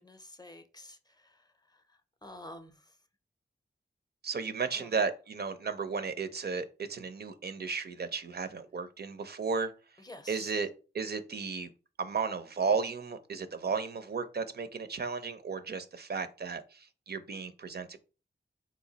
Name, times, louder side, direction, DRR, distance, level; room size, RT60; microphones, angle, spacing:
voice 1, 0.0-3.0 4.7-5.0 10.0-10.6, left 1 dB, 20° left, 0.5 m, -50 dB
voice 2, 4.2-9.7 10.3-10.7 10.9-11.7 12.0-18.0, right 5 dB, 55° right, 0.4 m, -34 dB
3.0 x 2.3 x 3.8 m
cardioid pair, 45°, 20 cm